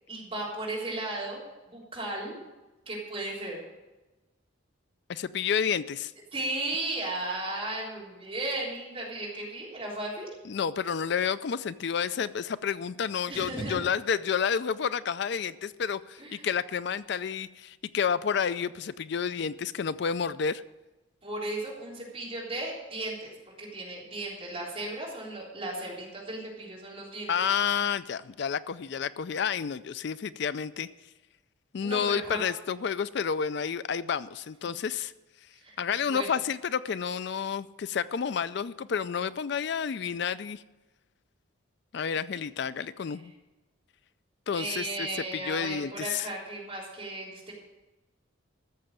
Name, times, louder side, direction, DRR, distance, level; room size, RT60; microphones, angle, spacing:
voice 1, 0.1-1.4 1.7-2.3 2.9-3.6 6.3-10.3 13.3-13.9 16.2-16.5 21.2-23.3 23.6-27.4 31.8-32.4 34.6-34.7 35.6-35.8 36.1-36.3 44.5-47.5, right 2 dB, 30° right, -5 dB, 3.6 m, -35 dB
voice 2, 5.1-6.1 10.4-20.6 27.3-30.9 31.7-35.1 35.8-40.6 41.9-43.3 44.5-45.1 45.3-46.3, left 7 dB, 55° left, 15 dB, 0.4 m, -30 dB
14.0 x 6.8 x 7.5 m, 1.1 s
head